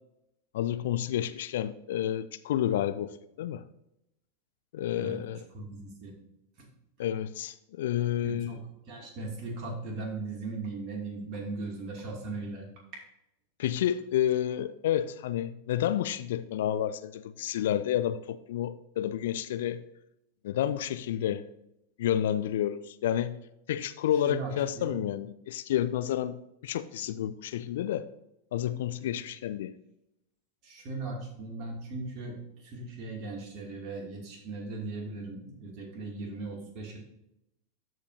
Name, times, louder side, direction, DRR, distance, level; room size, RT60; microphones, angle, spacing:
voice 1, 0.5-3.1 3.4-3.6 4.7-5.4 7.0-8.5 13.6-19.8 20.4-21.4 22.0-23.4 23.7-26.4 26.6-28.1 28.5-29.7, left 11 dB, 55° left, 13 dB, 0.4 m, -30 dB
voice 2, 5.5-6.1 6.6-6.7 8.2-8.6 8.9-12.7 12.9-13.0 24.2-24.9 29.1-29.2 30.6-37.0, right 3 dB, 40° right, 0 dB, 2.6 m, -38 dB
13.0 x 5.0 x 2.7 m, 0.84 s
figure-of-eight pair, 90°, 0 cm